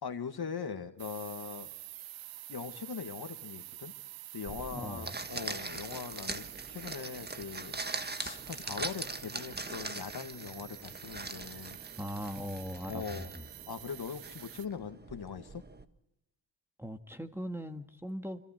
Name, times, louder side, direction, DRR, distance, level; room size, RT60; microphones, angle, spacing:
voice 1, 0.0-1.7 2.5-3.9 4.3-7.8 8.2-11.8 12.9-13.3 13.7-15.6, left 6 dB, 55° left, 2.0 m, -41 dB
sound 1, 1.0-14.7, right 15 dB, 85° right, 0.8 m, -48 dB
sound 2, 4.5-15.8, right 3 dB, 20° right, 1.6 m, -42 dB
voice 2, 4.7-5.1 12.0-13.4 16.8-18.4, equal, 5° right, 1.8 m, -40 dB
27.5 x 25.5 x 4.5 m
supercardioid pair, 50°, 47 cm